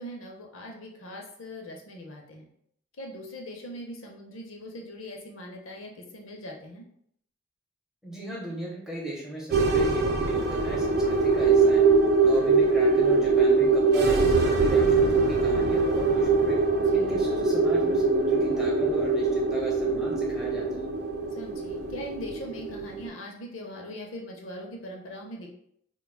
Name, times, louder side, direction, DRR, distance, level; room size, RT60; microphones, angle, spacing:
voice 1, 0.0-2.4 3.0-6.8 16.7-17.1 21.3-25.5, equal, 80° left, 1 dB, 0.7 m, -41 dB
voice 2, 8.0-11.8 12.2-16.6 16.9-20.9, right 2 dB, 5° right, -4 dB, 0.7 m, -37 dB
sound 1, 9.5-23.1, right 3 dB, 55° right, 0.4 m, -23 dB
4.5 x 2.2 x 2.2 m, 0.69 s
head